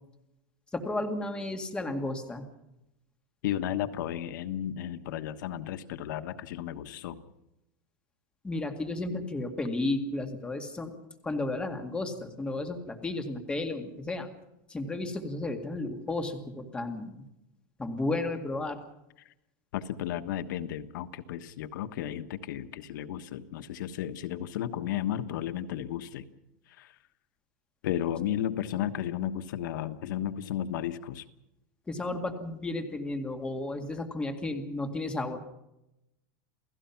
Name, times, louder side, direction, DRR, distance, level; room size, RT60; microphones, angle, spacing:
voice 1, 0.7-2.5 8.4-10.9 11.2-14.3 14.7-17.3 17.8-18.8 31.9-35.4, left 2 dB, 10° left, 6 dB, 2.0 m, -33 dB
voice 2, 3.4-7.2 19.2-19.3 19.7-26.3 26.7-27.0 27.8-31.2, left 11 dB, 80° left, 10 dB, 1.3 m, -34 dB
29.0 x 16.5 x 5.9 m, 0.89 s
supercardioid pair, 160°, 10 cm